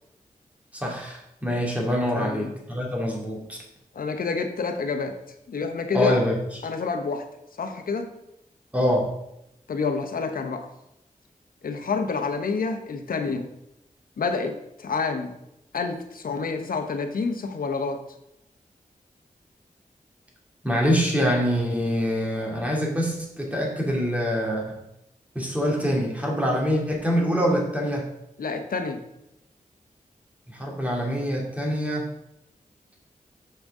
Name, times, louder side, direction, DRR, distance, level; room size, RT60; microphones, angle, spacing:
voice 1, 0.7-3.6 5.9-6.4 8.7-9.1 20.6-24.8 25.3-28.1 30.5-32.1, equal, 10° right, -2 dB, 2.4 m, -25 dB
voice 2, 2.1-2.5 3.9-5.1 5.5-6.2 6.6-7.2 7.6-8.1 9.7-10.7 11.6-13.5 14.2-15.3 15.7-18.0 28.4-29.0, left 4 dB, 80° left, 6 dB, 0.9 m, -28 dB
6.8 x 6.3 x 3.7 m, 0.83 s
cardioid pair, 55°, 15 cm